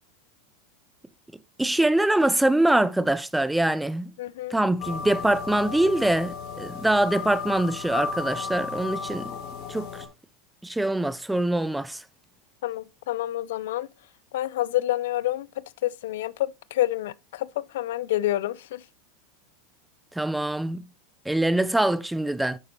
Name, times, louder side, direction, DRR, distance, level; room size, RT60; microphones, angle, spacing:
voice 1, 1.6-4.1 4.5-9.3 9.7-10.0 10.6-12.0 20.1-20.8 21.3-22.6, right 1 dB, 5° right, 0.5 m, -24 dB
voice 2, 4.2-4.6 12.6-13.9 14.3-18.8, left 14 dB, 75° left, 0.4 m, -28 dB
sound 1, 4.8-10.1, left 6 dB, 50° left, 2.5 m, -34 dB
9.4 x 6.7 x 2.9 m
hypercardioid pair, 110°, 0 cm